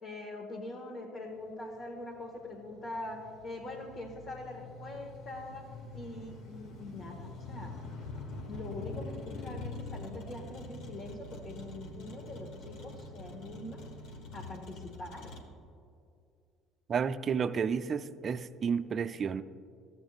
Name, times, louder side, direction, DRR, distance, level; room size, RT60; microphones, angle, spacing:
voice 1, 0.0-5.7 5.9-7.8 8.5-13.8 14.3-15.4, left 2 dB, 45° left, -2 dB, 1.4 m, -43 dB
Motor vehicle (road), 1.3-15.4, left 2 dB, 60° left, 1.3 m, -45 dB
voice 2, 16.9-19.4, right 6 dB, 40° right, 11 dB, 0.4 m, -31 dB
14.0 x 8.1 x 2.4 m, 2.4 s
hypercardioid pair, 60°, 0 cm